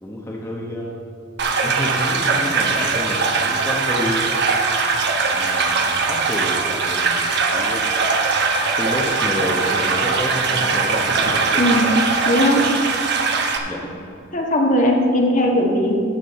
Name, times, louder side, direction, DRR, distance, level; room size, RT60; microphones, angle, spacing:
voice 1, 0.0-1.0 1.6-4.4 5.3-7.9 8.8-11.2 11.5-11.6 13.7-13.8, left 1 dB, 15° left, -3 dB, 1.1 m, -29 dB
sound 1, 1.4-13.6, right 4 dB, 60° right, 1.0 m, -21 dB
voice 2, 11.5-11.9 12.3-12.7 14.3-15.9, left 1 dB, 40° left, 0 dB, 1.6 m, -18 dB
13.0 x 7.6 x 4.3 m, 2.8 s
head